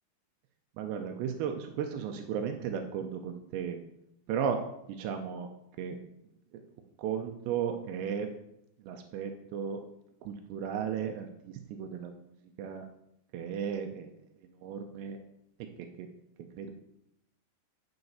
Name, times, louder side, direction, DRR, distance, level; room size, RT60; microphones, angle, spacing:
voice 1, 0.8-3.8 4.3-4.6 4.9-5.5 5.8-6.0 6.5-6.6 7.0-8.3 8.8-9.8 10.2-12.1 12.6-12.9 13.3-14.1 14.5-15.2 15.8-16.1 16.6-16.7, right 7 dB, 90° right, 5 dB, 2.4 m, -35 dB
9.2 x 5.7 x 4.0 m, 0.78 s
omnidirectional pair, 5.7 m